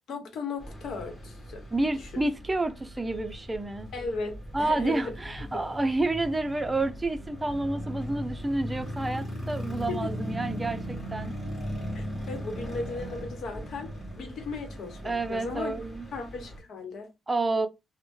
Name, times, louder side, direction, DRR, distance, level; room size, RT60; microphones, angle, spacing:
voice 1, 0.1-1.6 2.0-2.2 3.9-5.2 9.9-10.2 11.9-15.8 16.1-17.1, left 4 dB, 70° left, 1.0 m, -36 dB
sound 1, 0.6-16.6, equal, 20° left, 1.7 m, -38 dB
voice 2, 1.7-3.9 4.5-11.3 15.0-16.1 17.3-17.7, right 2 dB, 15° right, 0.5 m, -29 dB
3.1 x 2.1 x 3.1 m
cardioid pair, 90°, 0 cm